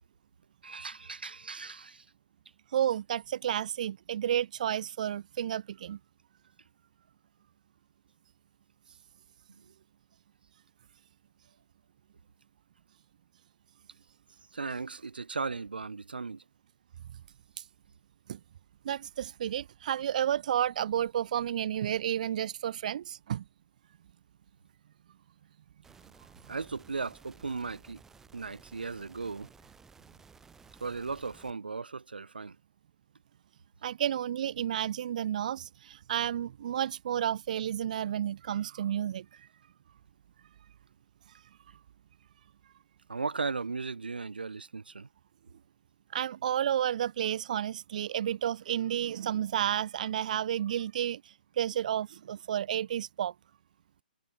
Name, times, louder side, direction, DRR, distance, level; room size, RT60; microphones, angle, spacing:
voice 1, 0.6-2.0 14.5-16.4 26.5-28.0 28.3-29.5 30.8-32.6 43.1-45.1, right 4 dB, 90° right, 1.1 m, -36 dB
voice 2, 2.7-6.0 18.3-18.4 18.8-23.4 33.8-39.5 46.1-53.3, right 10 dB, 55° right, 0.7 m, -31 dB
sound 1, 25.8-31.5, right 5 dB, 10° right, 5.6 m, -57 dB
hypercardioid pair, 140°, 5 cm